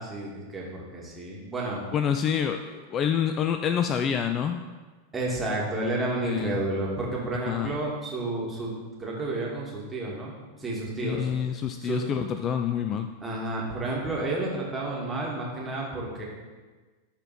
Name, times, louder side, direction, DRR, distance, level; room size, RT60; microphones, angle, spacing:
voice 1, 0.0-1.8 5.1-8.7 9.0-11.3 11.8-12.0 13.2-16.2, right 2 dB, 10° right, -5 dB, 2.4 m, -31 dB
voice 2, 1.9-4.6 6.2-6.6 7.4-7.8 11.0-13.1, left 8 dB, 30° left, 8 dB, 0.4 m, -27 dB
12.5 x 4.4 x 4.4 m, 1.3 s
figure-of-eight pair, 90°, 0 cm